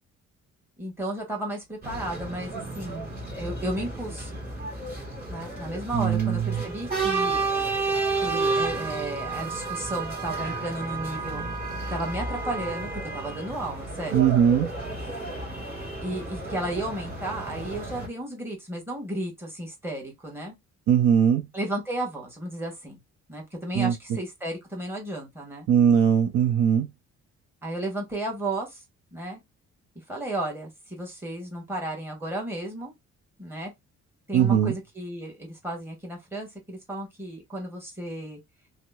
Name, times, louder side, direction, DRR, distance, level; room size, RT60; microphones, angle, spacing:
voice 1, 0.8-4.3 5.3-7.4 8.2-11.5 11.9-14.1 16.0-20.6 21.5-23.0 23.3-25.7 27.6-28.8 29.1-29.4 30.1-32.9 33.4-33.7 34.3-38.4, right 1 dB, 10° right, 1.2 m, -33 dB
sound 1, 1.8-18.1, right 3 dB, 30° right, 1.5 m, -31 dB
voice 2, 5.9-6.4 14.1-14.7 20.9-21.5 23.7-23.9 25.7-26.9 34.3-34.7, right 8 dB, 70° right, 0.6 m, -20 dB
2.8 x 2.1 x 2.2 m
cardioid pair, 90°, 30 cm